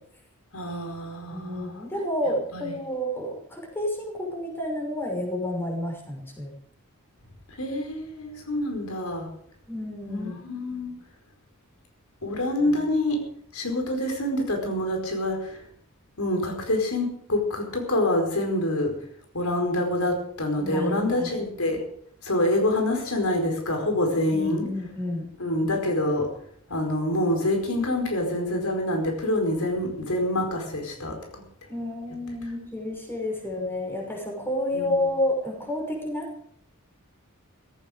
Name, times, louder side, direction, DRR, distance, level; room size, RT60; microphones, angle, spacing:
voice 1, 0.5-1.8 2.5-2.7 7.6-9.3 10.1-10.9 12.2-13.2 13.5-15.6 16.2-18.9 19.3-21.8 22.2-24.7 25.4-26.3 26.7-31.4 34.7-35.0, left 1 dB, 85° left, 3 dB, 4.7 m, -26 dB
voice 2, 1.3-6.5 9.7-10.5 20.6-21.3 24.3-25.3 31.7-36.3, left 1 dB, 10° left, 0 dB, 6.0 m, -30 dB
17.0 x 16.5 x 5.2 m, 0.63 s
head